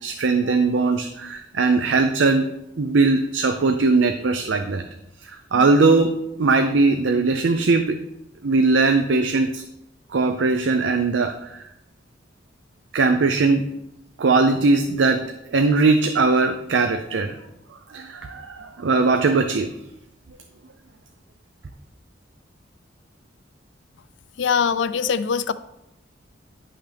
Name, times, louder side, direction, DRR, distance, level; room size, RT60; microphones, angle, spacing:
voice 1, 0.0-2.5 2.8-4.8 5.2-8.0 8.4-9.6 10.1-11.7 12.9-13.7 14.2-17.4 17.9-19.7, right 3 dB, 85° right, 6 dB, 0.6 m, -20 dB
voice 2, 24.4-25.5, left 6 dB, 75° left, 15 dB, 0.4 m, -22 dB
10.5 x 5.8 x 3.4 m, 0.85 s
head